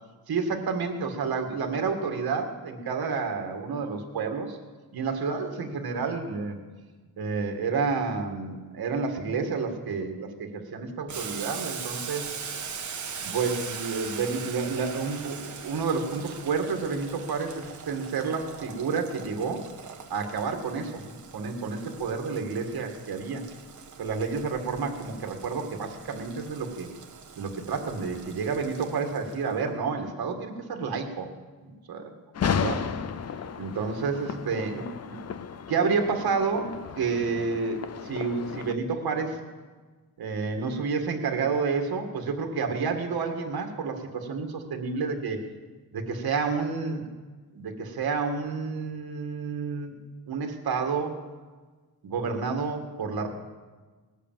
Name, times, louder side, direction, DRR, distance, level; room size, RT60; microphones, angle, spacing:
voice 1, 0.3-4.6 4.9-6.6 7.2-12.3 13.2-19.6 20.1-23.4 24.0-26.9 27.4-31.3 31.6-32.1 32.6-32.8 33.6-35.2 35.7-39.4 40.2-45.4 45.9-47.1 47.5-49.9 50.3-51.2 52.0-53.3, right 5 dB, 70° right, 4 dB, 1.9 m, -30 dB
Boiling, 11.1-29.5, right 6 dB, 50° right, 1.5 m, -41 dB
sound 1, 32.3-38.7, left 7 dB, 45° left, 0.6 m, -33 dB
19.5 x 8.4 x 7.4 m, 1.4 s
wide cardioid pair, 160°, 37 cm